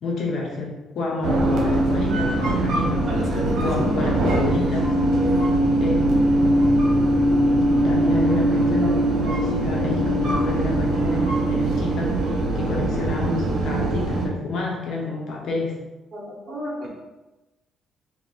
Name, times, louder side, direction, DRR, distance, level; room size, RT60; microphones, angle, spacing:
voice 1, 0.0-4.9 5.8-6.3 7.8-15.8, left 3 dB, 70° left, -2 dB, 0.8 m, -29 dB
sound 1, 1.2-14.3, right 1 dB, 70° right, 1.0 m, -21 dB
voice 2, 3.1-3.9 16.1-16.9, equal, 35° right, -5 dB, 1.1 m, -32 dB
3.2 x 2.9 x 4.3 m, 1.0 s
cardioid pair, 110°, 0 cm